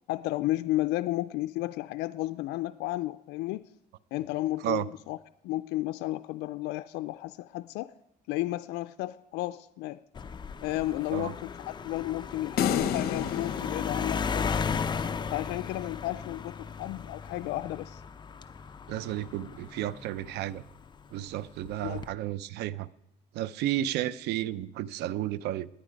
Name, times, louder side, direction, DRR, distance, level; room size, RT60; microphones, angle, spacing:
voice 1, 0.1-3.6 4.1-5.2 5.4-7.9 8.3-10.0 10.6-14.6 15.3-18.0 21.7-22.1, left 17 dB, 90° left, 0.4 m, -33 dB
sound 1, 10.2-20.9 21.7-22.1, left 6 dB, 25° left, 0.6 m, -36 dB
sound 2, 12.6-15.0, left 8 dB, 65° left, 0.9 m, -31 dB
voice 2, 18.9-20.6 21.1-22.9 23.3-25.7, right 13 dB, 85° right, 0.5 m, -32 dB
18.5 x 10.0 x 5.1 m
cardioid pair, 110°, 17 cm